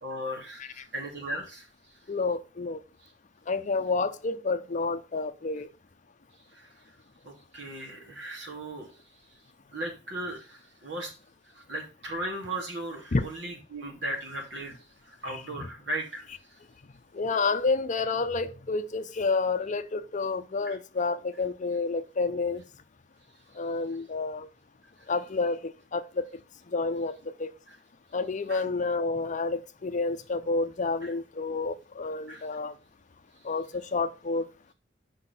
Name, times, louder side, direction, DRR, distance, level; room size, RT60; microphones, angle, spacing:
voice 1, 0.0-1.7 3.0-3.1 6.5-6.7 7.2-9.0 9.7-11.1 11.5-14.8 15.0-16.6 20.6-20.8 27.7-27.8 28.5-28.6 31.0-31.1 32.3-32.4, right 1 dB, 70° right, 2.7 m, -37 dB
voice 2, 2.1-2.8 3.5-5.7 13.1-13.2 17.1-22.6 23.6-24.5 25.1-26.3 26.7-27.5 28.1-32.7 33.4-34.5, left 3 dB, 40° left, 0.6 m, -29 dB
5.8 x 5.4 x 5.8 m
head